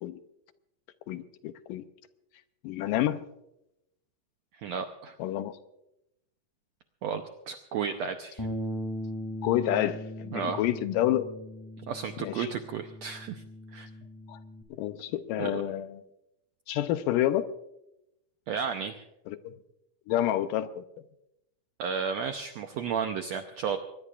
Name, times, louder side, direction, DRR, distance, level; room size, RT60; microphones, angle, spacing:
voice 1, 1.1-1.9 2.6-3.2 5.2-5.6 9.4-11.3 12.2-12.5 14.3-14.4 14.7-16.0 16.7-17.5 19.3-19.6 20.1-20.8, left 12 dB, 80° left, 11 dB, 2.2 m, -29 dB
voice 2, 4.5-5.2 7.0-8.5 10.3-10.7 11.9-13.4 13.7-13.9 15.4-15.6 18.5-19.0 21.8-23.8, right 6 dB, 80° right, 6 dB, 1.5 m, -33 dB
Bass guitar, 8.4-14.6, equal, 10° left, 1.6 m, -39 dB
23.0 x 20.0 x 2.5 m, 0.85 s
omnidirectional pair, 4.1 m